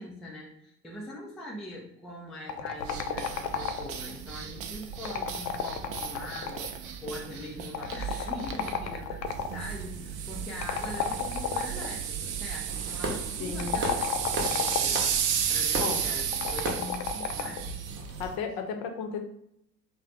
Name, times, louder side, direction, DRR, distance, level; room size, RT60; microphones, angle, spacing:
voice 1, 0.0-17.8, left 1 dB, ahead, -3 dB, 0.3 m, -42 dB
sound 1, 2.5-4.1 4.9-6.8 7.7-9.6 10.6-11.9 13.5-15.1 16.3-17.7, left 8 dB, 75° left, 0.6 m, -32 dB
sound 2, 2.8-18.4, right 8 dB, 50° right, 0.6 m, -34 dB
Fireworks, 12.7-18.3, right 2 dB, 25° right, 0.9 m, -37 dB
voice 2, 13.4-13.8 15.8-16.0 18.2-19.2, left 6 dB, 50° left, 5 dB, 0.8 m, -33 dB
3.2 x 2.1 x 3.9 m, 0.75 s
figure-of-eight pair, 70°, 50 cm